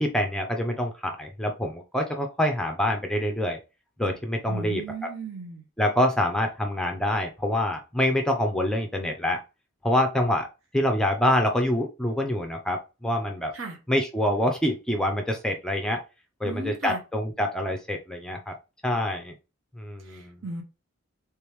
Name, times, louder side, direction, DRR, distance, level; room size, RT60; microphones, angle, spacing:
voice 1, 0.0-3.6 4.0-4.8 5.8-9.4 9.8-10.5 10.7-13.5 13.9-16.0 16.4-18.5 18.8-19.3 19.8-20.4, left 1 dB, 5° left, 3 dB, 0.4 m, -26 dB
voice 2, 4.5-5.6 13.5-13.8 16.4-17.0 20.0-20.6, right 3 dB, 75° right, 3 dB, 0.9 m, -36 dB
3.4 x 3.4 x 3.0 m, 0.29 s
head